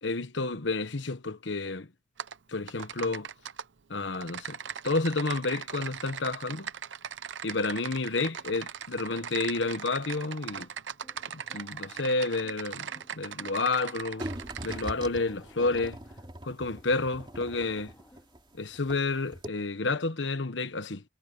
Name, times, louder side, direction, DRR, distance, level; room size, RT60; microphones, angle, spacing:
voice 1, 0.0-1.9 2.5-3.3 3.9-4.6 4.8-6.7 7.4-10.7 11.3-12.9 13.1-14.3 14.6-16.0 16.4-17.9 18.5-21.0, left 3 dB, 75° left, 1.2 m, -30 dB
Typing, 2.2-2.4 2.7-3.6 4.1-14.9, right 8 dB, 75° right, 0.7 m, -39 dB
sound 1, 9.1-18.6, left 1 dB, 15° left, 2.9 m, -58 dB
sound 2, 14.2-19.1 19.3-19.5, right 1 dB, 25° right, 2.8 m, -41 dB
head